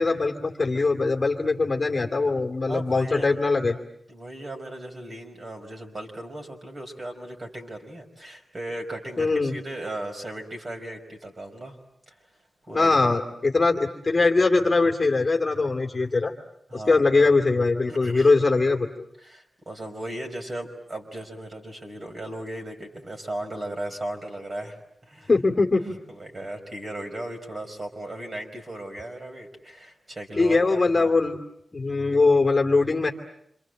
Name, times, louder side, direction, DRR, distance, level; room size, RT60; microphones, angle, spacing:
voice 1, 0.0-3.8 9.2-9.5 12.7-16.3 16.7-18.9 25.3-26.0 30.4-31.4 31.7-33.1, left 3 dB, 30° left, 2 dB, 2.5 m, -21 dB
voice 2, 2.7-3.3 4.1-11.8 12.1-12.2 12.7-13.2 16.7-17.0 17.9-18.3 19.2-25.3 26.1-31.1, right 1 dB, 35° right, 2 dB, 5.3 m, -36 dB
28.0 x 27.5 x 7.8 m, 0.76 s
wide cardioid pair, 155°, 0 cm